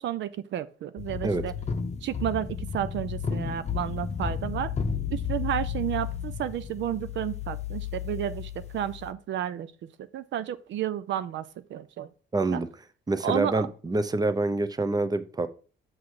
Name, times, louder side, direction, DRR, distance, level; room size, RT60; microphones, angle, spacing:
voice 1, 0.0-1.5 2.0-4.7 5.1-9.7 10.1-11.4 11.7-12.1 12.5-12.6 13.2-13.6, right 11 dB, 70° right, 0.5 m, -31 dB
sound 1, 1.0-9.1, left 7 dB, 35° left, 0.8 m, -33 dB
voice 2, 12.3-12.7 13.1-15.5, right 2 dB, 20° right, 0.7 m, -26 dB
6.0 x 5.8 x 4.8 m
cardioid pair, 90°, 20 cm